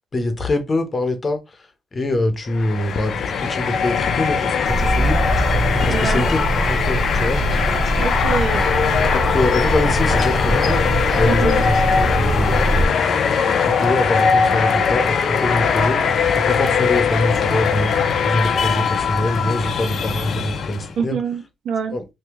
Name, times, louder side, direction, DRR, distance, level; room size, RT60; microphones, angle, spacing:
voice 1, 0.1-1.4 1.9-5.2 5.8-7.4 9.1-10.8 11.2-12.6 13.4-18.0 18.3-21.2 21.9-22.1, left 2 dB, 30° left, 0.9 m, -24 dB
sound 1, 2.5-20.9, left 6 dB, 60° left, 0.5 m, -20 dB
sound 2, 4.7-12.9, right 1 dB, 35° right, 0.6 m, -22 dB
voice 2, 5.9-6.2 8.0-8.7 11.3-11.6 21.0-22.0, right 5 dB, 70° right, 0.7 m, -25 dB
2.9 x 2.7 x 3.5 m
cardioid pair, 90°, 0 cm